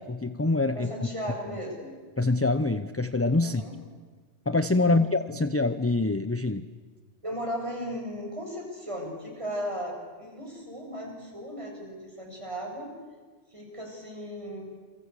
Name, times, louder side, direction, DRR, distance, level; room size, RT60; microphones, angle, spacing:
voice 1, 0.0-0.9 2.2-3.6 4.5-6.7, left 2 dB, 15° left, 12 dB, 0.6 m, -25 dB
voice 2, 0.7-1.9 3.4-3.7 4.8-5.1 7.2-12.9 13.5-14.6, equal, 25° right, 0 dB, 7.0 m, -36 dB
29.0 x 23.0 x 8.4 m, 1.5 s
omnidirectional pair, 1.2 m